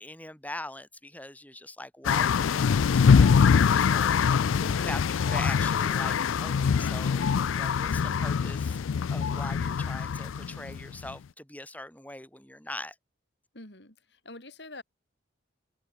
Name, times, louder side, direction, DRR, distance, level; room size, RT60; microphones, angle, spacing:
voice 1, 0.0-8.8 9.1-13.0, left 1 dB, 10° left, 5.6 m, -42 dB
sound 1, 2.0-11.1, left 6 dB, 90° left, 0.4 m, -24 dB
voice 2, 4.7-5.1 13.5-14.8, left 2 dB, 60° left, 4.8 m, -46 dB
open air
head